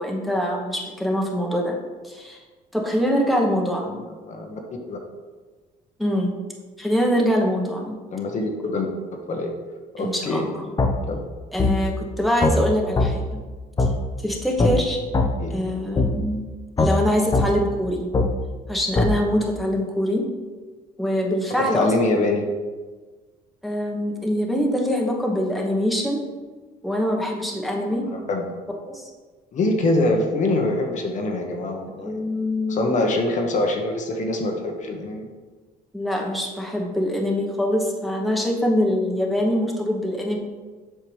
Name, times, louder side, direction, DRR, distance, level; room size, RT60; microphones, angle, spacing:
voice 1, 0.0-1.8 2.0-2.4 2.7-4.0 6.0-6.3 6.8-8.0 10.0-10.6 11.5-13.4 13.8-13.9 14.2-15.0 15.5-16.4 16.8-18.1 18.7-20.3 21.0-21.9 23.6-26.2 26.8-28.1 28.9-29.0 32.0-33.0 35.9-40.4, equal, ahead, -1 dB, 1.0 m, -24 dB
voice 2, 4.3-4.6 4.9-5.0 8.1-8.9 9.1-9.5 9.9-10.5 11.1-11.2 15.4-15.6 21.6-22.5 27.8-28.5 29.5-32.2 32.7-35.3, left 2 dB, 45° left, 2 dB, 1.0 m, -24 dB
sound 1, 10.8-10.9 11.6-11.7 12.4-12.6 13.0-13.1 13.8-13.9 14.6-14.7 15.1-15.3 16.0-16.1 16.8-16.9 17.3-17.5 18.1-18.3 19.0-19.1, left 3 dB, 25° left, 0.7 m, -19 dB
7.8 x 5.7 x 3.2 m, 1.4 s
cardioid pair, 110°, 17 cm